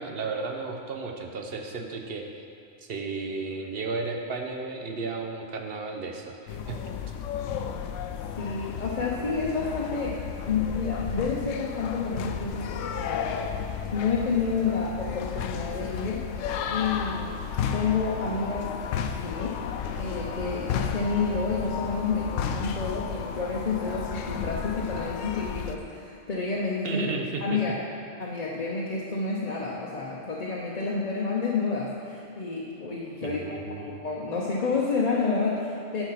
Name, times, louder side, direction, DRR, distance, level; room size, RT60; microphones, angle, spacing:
voice 1, 0.0-2.3 2.9-6.4 6.7-6.8 26.8-27.6 33.2-34.0, right 4 dB, 55° right, 3 dB, 1.0 m, -33 dB
sound 1, 6.5-25.8, left 7 dB, 85° left, 0.9 m, -33 dB
voice 2, 8.4-16.3 16.7-17.4 17.7-18.7 19.0-19.6 20.0-27.0 27.4-27.8 28.2-36.0, left 4 dB, 40° left, -4 dB, 0.8 m, -29 dB
10.5 x 4.6 x 5.8 m, 2.7 s
omnidirectional pair, 1.3 m